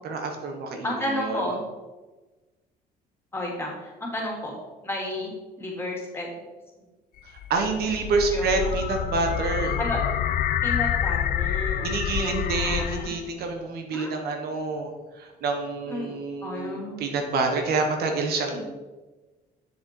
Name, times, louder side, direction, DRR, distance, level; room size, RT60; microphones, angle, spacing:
voice 1, 0.0-1.5 7.5-9.8 11.8-18.6, right 3 dB, 70° right, 4 dB, 1.3 m, -27 dB
voice 2, 0.8-1.6 3.3-4.5 4.8-5.3 5.6-6.4 8.3-8.8 9.8-10.0 10.6-13.1 13.9-14.1 15.9-16.1 16.4-17.0 18.6-18.7, left 1 dB, 15° left, -2 dB, 3.0 m, -32 dB
sound 1, 7.2-13.3, left 10 dB, 60° left, 0.5 m, -27 dB
7.6 x 6.7 x 4.6 m, 1.2 s
cardioid pair, 110°, 17 cm